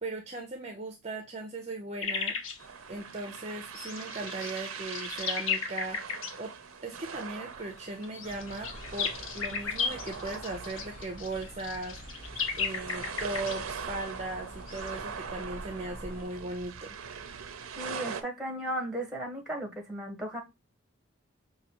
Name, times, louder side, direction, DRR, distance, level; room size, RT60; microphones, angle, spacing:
voice 1, 0.0-2.4 2.9-6.5 6.8-12.0 12.6-17.0, right 2 dB, 30° right, 0.6 m, -38 dB
sound 1, 2.0-2.6 3.7-6.3 7.9-14.3 14.7-14.9, left 6 dB, 75° left, 0.8 m, -34 dB
sound 2, 2.6-18.2, right 6 dB, 85° right, 0.6 m, -42 dB
sound 3, 8.2-16.2, equal, 40° left, 1.0 m, -47 dB
voice 2, 17.8-20.4, right 1 dB, 5° right, 1.1 m, -35 dB
5.2 x 2.7 x 2.9 m
head